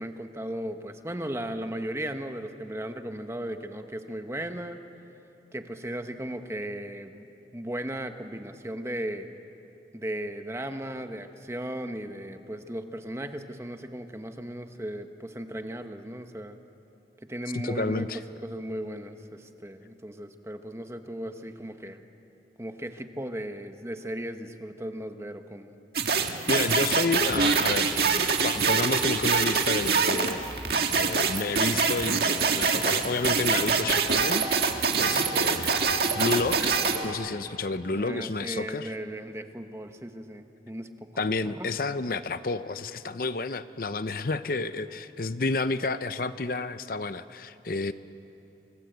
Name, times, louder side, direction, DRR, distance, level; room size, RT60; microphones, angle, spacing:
voice 1, 0.0-4.8 5.5-9.3 9.9-16.6 17.2-18.1 18.4-22.0 22.6-25.8 35.0-35.3 37.9-40.9 41.1-41.2 41.5-41.7, right 1 dB, 15° right, 7 dB, 1.1 m, -36 dB
voice 2, 17.5-18.2 26.5-27.9 28.4-30.5 31.0-34.4 35.0-35.9 36.1-36.8 37.0-38.9 41.2-47.9, left 3 dB, 50° left, 12 dB, 0.7 m, -30 dB
sound 1, 25.9-37.0, right 5 dB, 60° right, 1.9 m, -24 dB
30.0 x 25.0 x 8.0 m, 2.9 s
head